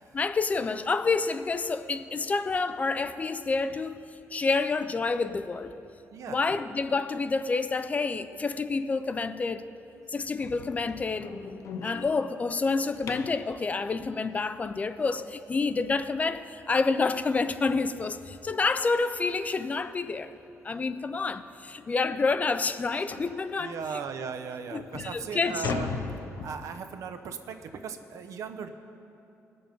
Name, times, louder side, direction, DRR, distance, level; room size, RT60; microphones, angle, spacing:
voice 1, 0.1-5.7 6.3-9.6 10.1-11.3 11.8-20.3 20.6-24.0 24.7-25.7, left 4 dB, 25° left, 12 dB, 0.3 m, -28 dB
sound 1, 10.4-13.5 16.3-16.4 16.9-17.1 17.4-17.5 18.0-18.1 19.2-19.3 19.7-19.9 20.5-20.6 21.0-21.1 21.6-21.7 23.1-23.4 24.1-24.2 24.7-27.0, left 5 dB, 65° left, 0.8 m, -38 dB
voice 2, 23.6-28.7, right 6 dB, 70° right, 8 dB, 0.7 m, -37 dB
19.5 x 7.0 x 5.2 m, 2.8 s
wide cardioid pair, 150°, 6 cm